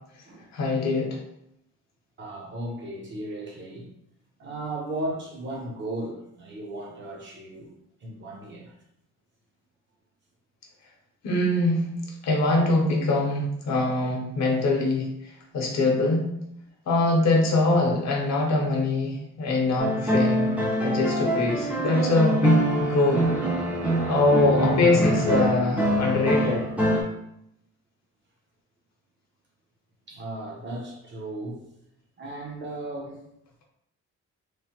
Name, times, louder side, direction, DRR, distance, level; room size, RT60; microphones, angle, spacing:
voice 1, 0.5-1.2 11.2-11.9 12.2-16.3 16.9-23.3 24.1-26.7, left 2 dB, 65° left, 0 dB, 0.8 m, -23 dB
voice 2, 2.2-3.9 4.4-7.7 8.0-8.7 30.1-31.7 32.2-33.2, right 1 dB, 40° right, -2 dB, 0.7 m, -35 dB
sound 1, 19.8-27.0, right 1 dB, 5° right, 0.5 m, -25 dB
3.1 x 2.1 x 2.8 m, 0.77 s
cardioid pair, 145°, 29 cm